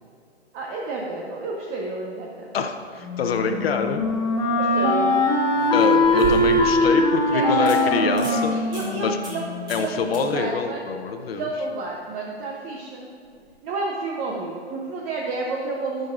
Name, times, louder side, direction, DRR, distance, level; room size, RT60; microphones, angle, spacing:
voice 1, 0.5-2.6 4.6-5.3 6.8-6.9 7.3-7.9 8.3-9.4 9.7-10.8 11.3-13.1 13.6-16.1, right 3 dB, 30° right, -1 dB, 0.9 m, -30 dB
voice 2, 2.5-4.0 5.7-8.6 8.9-9.2 9.7-11.5, left 5 dB, 65° left, 6 dB, 0.8 m, -25 dB
Wind instrument woodwind instrument, 3.0-9.9, left 1 dB, 10° left, 1.3 m, -21 dB
sound 1, 4.1-4.2 5.5-6.8 7.2-7.3 7.7-7.8 8.1-8.4 8.7-8.9 9.2-9.4 9.7-9.9 10.1-10.2 13.3-13.4, right 1 dB, 15° right, 2.3 m, -33 dB
15.0 x 6.4 x 2.5 m, 2.2 s
hypercardioid pair, 120°, 33 cm